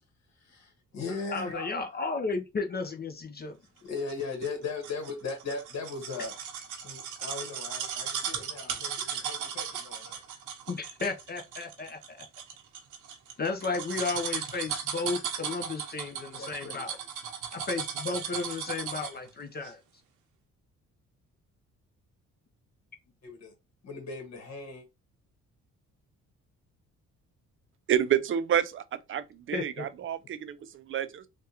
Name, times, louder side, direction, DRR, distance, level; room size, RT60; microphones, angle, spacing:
voice 1, 0.4-1.7 3.8-6.3 6.8-10.2 16.4-16.8 23.2-23.5 23.8-24.8, left 4 dB, 60° left, 1.4 m, -38 dB
voice 2, 1.3-3.6 10.7-12.2 13.4-17.0 17.5-19.8 29.5-29.9, left 4 dB, 35° left, 0.6 m, -33 dB
sound 1, 4.1-19.3 19.6-19.7, right 8 dB, 85° right, 0.8 m, -36 dB
voice 3, 27.9-28.8 29.1-31.3, right 10 dB, 45° right, 0.4 m, -29 dB
3.4 x 2.3 x 2.8 m
cardioid pair, 90°, 30 cm